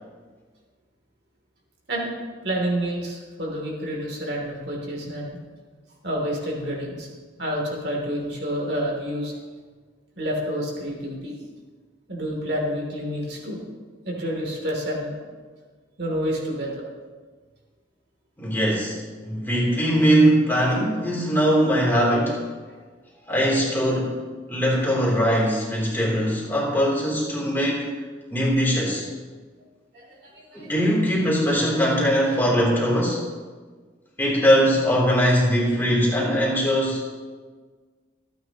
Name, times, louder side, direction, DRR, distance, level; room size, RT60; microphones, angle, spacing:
voice 1, 2.4-5.4 6.0-7.1 7.4-9.3 10.2-11.3 12.1-13.6 14.0-15.2 16.0-16.8 22.7-22.8 29.9-30.7 36.4-36.5, equal, 55° right, -1 dB, 3.0 m, -29 dB
voice 2, 18.4-22.4 23.3-24.2 24.5-27.9 28.3-29.0 30.5-33.2 34.2-37.0, equal, 10° left, -5 dB, 3.3 m, -21 dB
26.5 x 9.4 x 3.0 m, 1.5 s
head